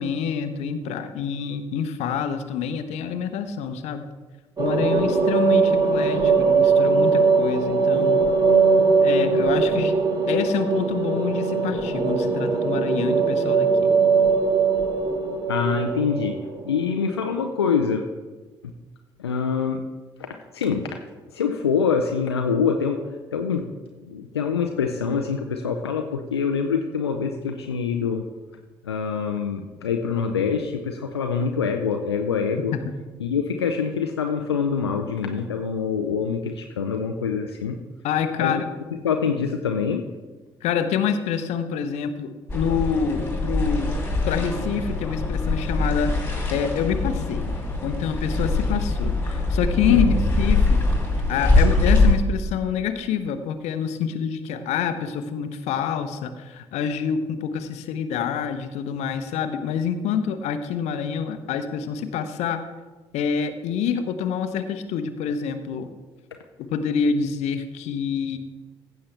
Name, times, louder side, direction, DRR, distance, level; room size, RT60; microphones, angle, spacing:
voice 1, 0.0-4.0 4.6-8.2 9.0-9.9 10.3-13.9 38.0-38.7 40.6-44.0 44.2-46.1 46.5-47.5 47.8-50.8 51.3-62.6 63.1-65.9 66.6-68.4, left 7 dB, 60° left, 10 dB, 0.8 m, -27 dB
sound 1, 4.6-16.8, right 4 dB, 30° right, 1.8 m, -20 dB
voice 2, 15.5-16.4 16.7-18.0 19.2-19.8 20.2-20.3 20.5-20.9 21.3-23.0 23.3-23.6 24.1-28.2 28.8-32.7 33.2-37.8 38.4-38.6 39.0-40.0 49.9-50.2, left 6 dB, 85° left, 4 dB, 0.5 m, -25 dB
sound 2, 42.5-52.1, left 2 dB, 15° left, 2.7 m, -22 dB
15.0 x 6.7 x 3.4 m, 1.3 s
figure-of-eight pair, 50°, 13 cm